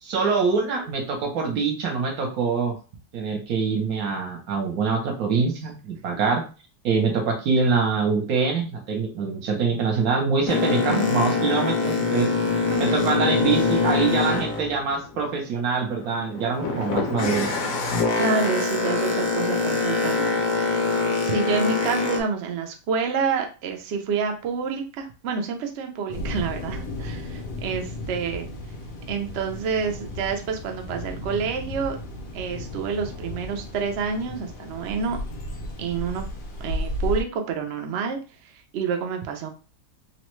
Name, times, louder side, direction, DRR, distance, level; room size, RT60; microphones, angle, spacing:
voice 1, 0.0-2.7 3.1-6.4 6.8-12.3 12.8-17.6, right 5 dB, 65° right, 1 dB, 1.1 m, -24 dB
Boat Water vehicle, 10.5-15.5 15.9-22.2, left 4 dB, 65° left, 0.9 m, -24 dB
voice 2, 10.9-11.5 12.7-13.1 18.1-20.4 20.9-28.5 29.1-32.0 32.3-35.2 35.8-36.3 36.6-39.5, right 5 dB, 90° right, 4 dB, 0.5 m, -28 dB
sound 1, 26.1-37.2, left 1 dB, 85° left, 1.3 m, -34 dB
3.1 x 2.1 x 3.0 m, 0.34 s
omnidirectional pair, 1.8 m